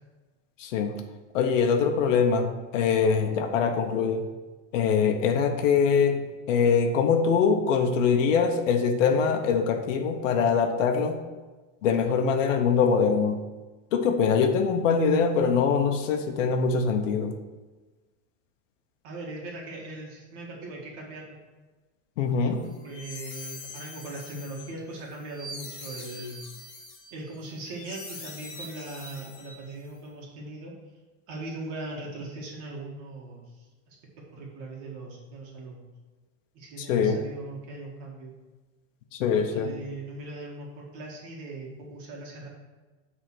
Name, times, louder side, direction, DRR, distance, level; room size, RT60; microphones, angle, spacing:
voice 1, 0.6-1.0 1.3-4.3 4.7-11.2 11.8-13.3 13.9-17.3 22.2-22.6 36.8-37.2 39.1-39.7, left 6 dB, 90° left, 5 dB, 0.9 m, -23 dB
voice 2, 19.0-21.4 22.5-26.4 27.1-30.7 31.3-34.0 34.3-35.9 36.5-38.3 39.3-42.5, right 2 dB, 50° right, -2 dB, 1.7 m, -40 dB
sound 1, 22.6-29.9, left 2 dB, 40° left, 2.0 m, -43 dB
9.1 x 3.7 x 6.1 m, 1.3 s
supercardioid pair, 155°, 37 cm